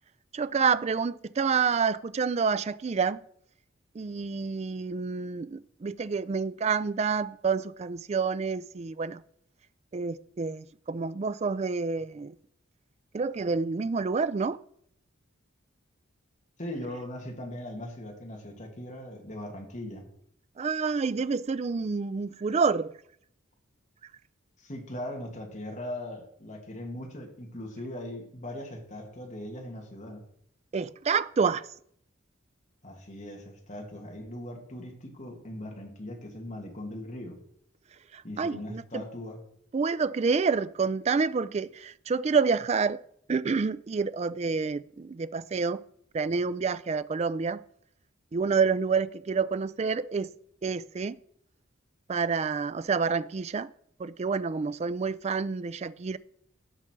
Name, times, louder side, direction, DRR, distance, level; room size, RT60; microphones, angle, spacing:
voice 1, 0.3-3.2 3.9-9.2 9.9-12.4 13.1-14.6 20.6-23.0 30.7-31.7 38.1-39.0 39.7-43.0 43.3-45.8 46.1-47.6 48.3-50.3 50.6-51.2 52.1-53.7 54.0-56.2, right 5 dB, 30° right, 0.3 m, -28 dB
voice 2, 16.6-20.1 24.6-30.2 32.8-37.4 38.2-39.4, left 1 dB, 35° left, 2.3 m, -39 dB
16.5 x 5.9 x 4.6 m
head